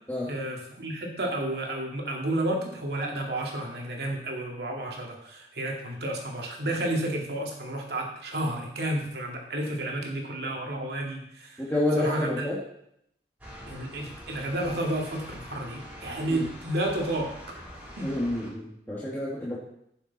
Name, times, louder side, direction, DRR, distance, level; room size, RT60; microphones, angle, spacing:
voice 1, 0.3-11.6 12.0-12.5 13.7-17.4 18.0-18.1, right 1 dB, 70° right, 0 dB, 2.3 m, -31 dB
voice 2, 11.6-12.6 16.3-16.5 18.0-19.6, left 1 dB, 10° left, -7 dB, 1.8 m, -29 dB
sound 1, 13.4-18.5, equal, 10° right, 3.3 m, -44 dB
15.5 x 7.1 x 4.2 m, 0.74 s
head